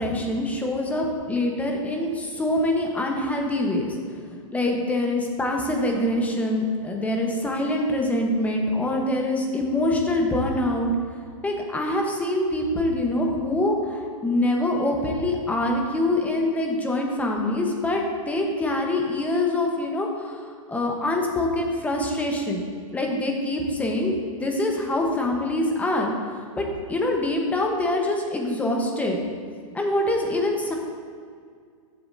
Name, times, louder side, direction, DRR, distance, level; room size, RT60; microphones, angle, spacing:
voice 1, 0.0-4.0 4.5-10.9 11.4-22.6 22.9-24.1 24.4-29.2 29.7-30.7, left 1 dB, 10° left, 1 dB, 1.1 m, -25 dB
14.0 x 7.3 x 2.7 m, 2.1 s
hypercardioid pair, 135°, 18 cm